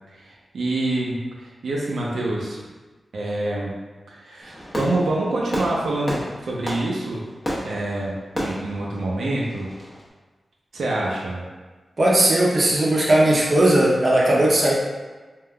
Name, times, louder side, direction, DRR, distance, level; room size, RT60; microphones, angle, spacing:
voice 1, 0.1-2.6 3.1-3.7 4.1-7.2 7.6-9.7 10.7-11.4, right 2 dB, 90° right, -4 dB, 0.5 m, -26 dB
Fireworks, 4.4-10.0, equal, 20° left, 0.8 m, -32 dB
voice 2, 12.0-14.7, right 1 dB, 40° right, -4 dB, 0.6 m, -17 dB
3.4 x 2.5 x 2.2 m, 1.3 s
wide cardioid pair, 115°, 0 cm